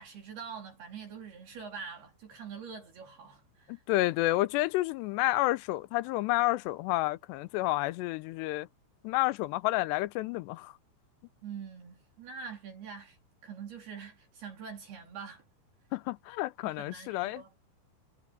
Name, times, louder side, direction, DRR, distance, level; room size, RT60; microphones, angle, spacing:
voice 1, 0.0-3.8 11.4-13.2 13.4-15.4 16.6-17.5, right 6 dB, 60° right, 5.3 m, -44 dB
voice 2, 3.7-8.7 9.0-10.7 15.9-17.4, left 18 dB, 80° left, 2.7 m, -30 dB
omnidirectional pair, 5.2 m